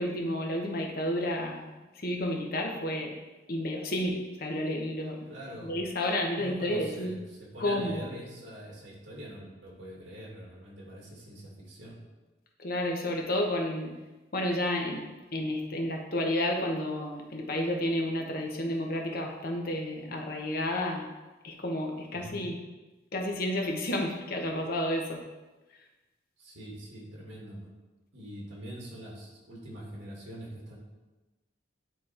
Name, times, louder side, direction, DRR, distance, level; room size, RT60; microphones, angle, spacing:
voice 1, 0.0-1.7 2.0-3.1 3.5-5.2 5.7-7.1 7.6-8.0 12.6-13.9 14.3-15.0 15.3-21.1 21.4-22.6 23.1-25.2, left 1 dB, 55° left, 1 dB, 1.0 m, -31 dB
voice 2, 5.3-5.7 6.3-12.0 22.1-22.5 26.4-27.7 28.1-30.8, right 1 dB, 85° right, -3 dB, 2.1 m, -44 dB
9.0 x 3.1 x 4.3 m, 1.1 s
head